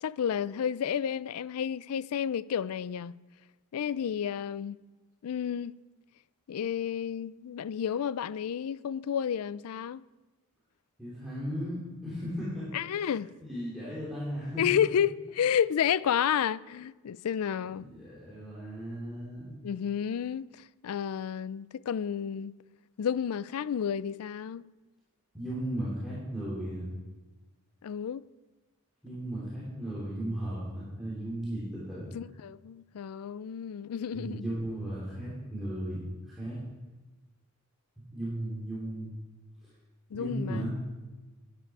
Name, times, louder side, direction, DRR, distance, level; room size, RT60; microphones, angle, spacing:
voice 1, 0.0-3.1 3.7-4.8 5.2-5.7 6.5-10.0 12.7-13.3 14.6-17.9 19.6-20.5 20.8-22.5 23.0-24.6 27.8-28.2 32.1-34.4 40.1-40.7, left 8 dB, 75° left, 0.4 m, -31 dB
voice 2, 11.0-12.7 13.0-13.1 13.4-14.8 17.7-19.5 25.3-26.9 29.0-32.1 34.1-36.6 38.1-39.1 39.6-39.7 40.1-40.7, right 1 dB, ahead, 2.8 m, -36 dB
12.0 x 10.0 x 4.7 m
head